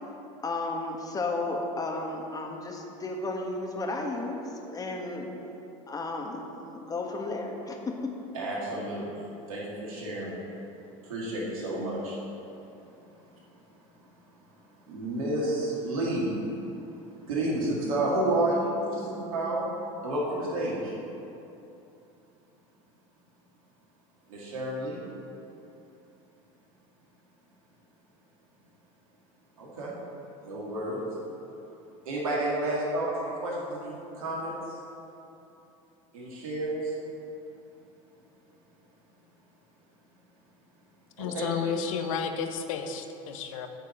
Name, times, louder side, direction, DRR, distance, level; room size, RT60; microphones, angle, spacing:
voice 1, 0.4-5.3 5.9-7.9, left 2 dB, 20° left, 1 dB, 1.3 m, -33 dB
voice 2, 8.3-10.4 11.0-12.2 14.9-16.3 17.3-19.7 20.0-20.9 24.3-25.0 29.6-29.9 30.4-31.0 32.1-34.8 36.1-36.9 41.2-42.1, right 1 dB, 85° right, -5 dB, 2.0 m, -30 dB
voice 3, 41.2-43.7, left 6 dB, 75° left, 7 dB, 0.8 m, -32 dB
9.0 x 4.7 x 7.0 m, 2.9 s
hypercardioid pair, 95°, 17 cm